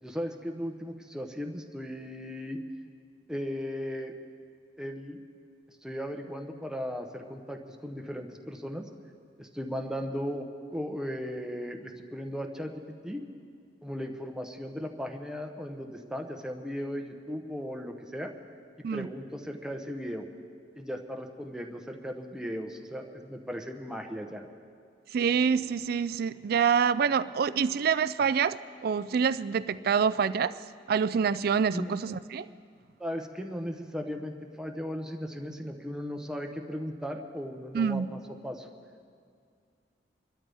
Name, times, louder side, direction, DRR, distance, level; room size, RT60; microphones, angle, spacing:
voice 1, 0.0-2.6 3.3-4.1 4.8-5.2 5.8-8.8 9.4-13.2 13.8-18.3 18.9-20.3 20.7-24.4 31.7-31.9 33.0-38.7, equal, 5° right, 3 dB, 0.9 m, -37 dB
voice 2, 25.1-30.6 30.9-32.5 37.7-38.1, right 6 dB, 60° right, 15 dB, 0.4 m, -26 dB
25.0 x 13.0 x 3.5 m, 2.2 s
head